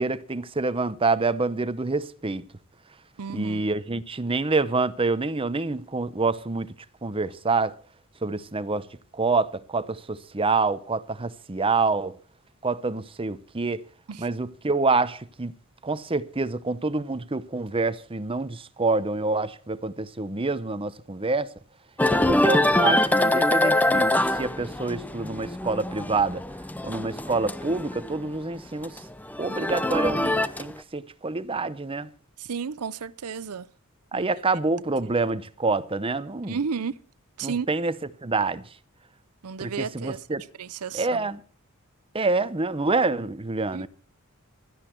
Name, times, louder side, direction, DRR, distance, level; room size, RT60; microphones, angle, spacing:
voice 1, 0.0-2.5 3.3-6.7 7.0-7.7 8.2-8.9 9.1-12.2 12.6-13.8 14.2-15.5 15.8-21.5 22.1-26.4 26.8-29.0 29.4-32.1 34.1-36.6 37.4-37.9 38.2-38.6 39.6-40.4 40.9-41.4 42.1-43.9, right 3 dB, 25° right, 0.8 m, -27 dB
voice 2, 3.2-3.7 14.1-14.3 32.4-33.7 34.1-34.3 36.4-37.0 37.4-37.7 39.4-40.2 40.6-41.3 43.7-43.9, right 6 dB, 85° right, 0.6 m, -32 dB
sound 1, 22.0-28.3 28.6-30.8, left 1 dB, 5° left, 0.7 m, -24 dB
16.5 x 12.5 x 4.5 m
head